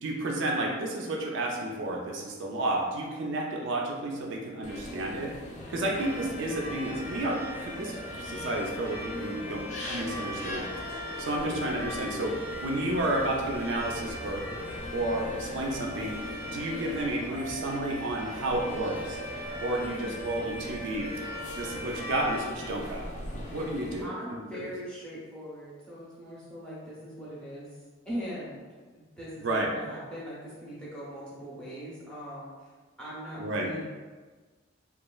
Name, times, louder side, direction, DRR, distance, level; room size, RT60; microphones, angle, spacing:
voice 1, 0.0-5.3 5.7-10.7 11.2-14.4 14.9-16.2 16.5-19.2 19.6-21.1 21.5-23.0 23.3-24.1 24.5-24.7 29.4-29.7 33.4-33.7, right 1 dB, 70° right, -1 dB, 0.4 m, -31 dB
sound 1, 4.6-24.0, left 1 dB, 35° left, 0.3 m, -41 dB
sound 2, 6.0-22.7, left 1 dB, 90° left, 1.0 m, -40 dB
voice 2, 11.4-11.8 19.8-20.2 24.0-27.7 28.0-28.6 28.9-32.5 33.0-33.8, equal, 5° left, -9 dB, 0.7 m, -40 dB
3.0 x 2.3 x 2.3 m, 1.4 s
head